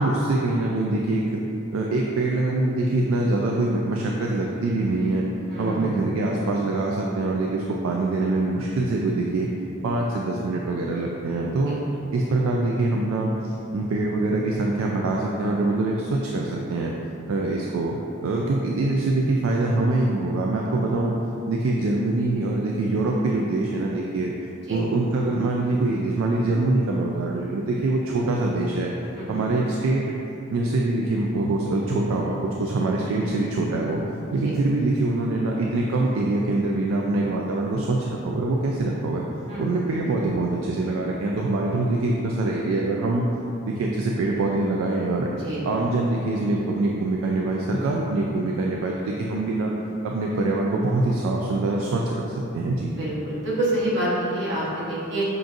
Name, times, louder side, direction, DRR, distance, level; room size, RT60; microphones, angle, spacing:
voice 1, 0.0-1.4 1.7-5.3 5.6-9.5 9.8-11.8 12.1-16.9 17.3-18.0 18.2-21.2 21.5-24.3 24.7-28.9 29.3-30.0 30.5-34.0 34.3-39.3 39.6-43.3 43.7-45.3 45.6-49.7 50.0-52.9, right 2 dB, 75° right, -1 dB, 0.3 m, -24 dB
voice 2, 5.5-6.0 11.7-11.8 24.7-24.8 29.1-29.4 34.4-34.5 39.5-39.7 45.3-45.6 53.0-55.2, right 1 dB, 60° right, -8 dB, 1.1 m, -27 dB
6.0 x 2.6 x 2.4 m, 2.9 s
head